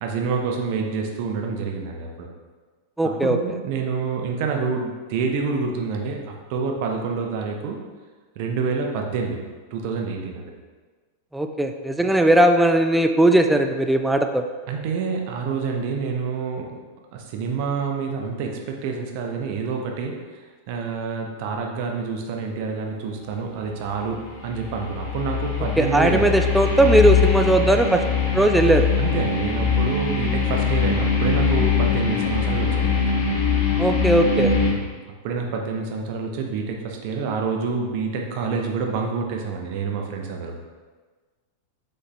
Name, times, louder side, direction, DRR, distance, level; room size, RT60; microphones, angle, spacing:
voice 1, 0.0-2.3 3.0-7.8 8.4-9.5 9.7-10.5 14.7-16.8 17.1-20.4 20.7-26.4 29.0-33.0 34.7-34.9 35.2-40.7, right 5 dB, 45° right, 2 dB, 0.7 m, -27 dB
voice 2, 3.0-3.4 11.3-14.4 25.8-28.0 28.3-28.9 33.8-34.5, right 1 dB, 5° right, 5 dB, 0.3 m, -18 dB
sound 1, 24.0-34.7, left 6 dB, 60° left, 1.0 m, -22 dB
6.3 x 2.6 x 3.2 m, 1.4 s
figure-of-eight pair, 90°, 0 cm